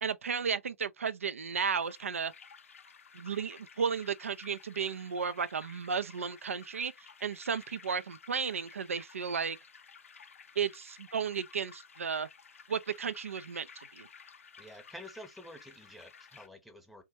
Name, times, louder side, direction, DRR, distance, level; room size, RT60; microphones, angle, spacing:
voice 1, 0.0-2.3 3.1-6.9 7.2-9.6 10.6-12.3 12.7-14.1, right 6 dB, 80° right, 0.3 m, -34 dB
sound 1, 1.8-16.5, left 6 dB, 75° left, 0.5 m, -55 dB
voice 2, 14.6-17.0, equal, ahead, 0.7 m, -49 dB
3.3 x 2.1 x 2.7 m
hypercardioid pair, 125°, 7 cm